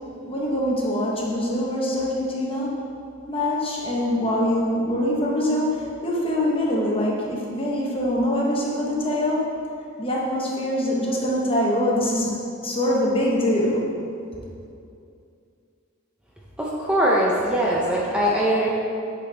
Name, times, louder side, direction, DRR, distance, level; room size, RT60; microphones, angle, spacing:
voice 1, 0.2-2.8 3.3-9.5 10.0-13.9, left 1 dB, 25° left, -3 dB, 1.0 m, -24 dB
voice 2, 16.6-18.7, right 1 dB, 5° right, -5 dB, 0.5 m, -21 dB
8.1 x 4.2 x 3.4 m, 2.5 s
head